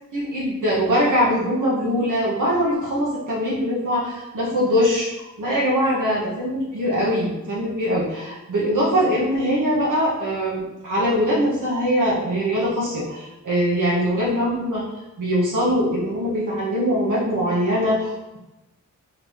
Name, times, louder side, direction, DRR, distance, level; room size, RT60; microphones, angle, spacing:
voice 1, 0.1-14.8 15.2-18.4, equal, 70° right, -7 dB, 1.2 m, -22 dB
3.9 x 3.1 x 3.0 m, 0.99 s
wide cardioid pair, 105°, 32 cm